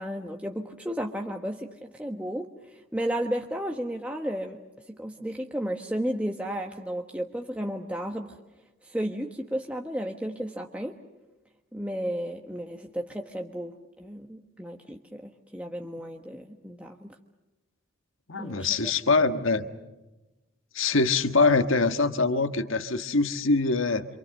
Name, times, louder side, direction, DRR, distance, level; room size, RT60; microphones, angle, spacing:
voice 1, 0.0-4.6 4.9-8.3 8.8-11.0 11.7-17.1 18.4-18.9, equal, 5° right, 2 dB, 1.3 m, -33 dB
voice 2, 18.3-19.6 20.7-24.1, left 3 dB, 75° left, 8 dB, 1.5 m, -24 dB
28.0 x 27.0 x 6.5 m, 1.1 s
head